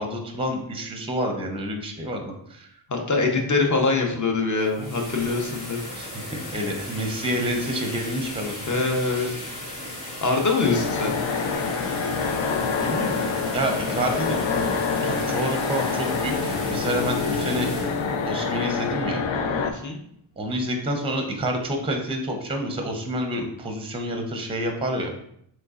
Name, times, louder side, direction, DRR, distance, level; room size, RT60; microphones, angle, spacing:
voice 1, 0.0-2.7 6.0-8.5 9.2-9.4 12.8-13.3 13.5-14.4 15.0-17.7 18.2-19.2 20.4-25.1, right 1 dB, 10° right, 3 dB, 0.6 m, -28 dB
voice 2, 2.9-5.8 8.7-9.5 10.2-11.1 19.6-20.0, left 3 dB, 35° left, 2 dB, 0.8 m, -24 dB
sound 1, 4.5-19.4, left 1 dB, 90° left, 1.2 m, -36 dB
sound 2, 10.6-19.7, left 5 dB, 70° left, 0.5 m, -26 dB
3.7 x 3.1 x 2.4 m, 0.72 s
cardioid pair, 65°, 49 cm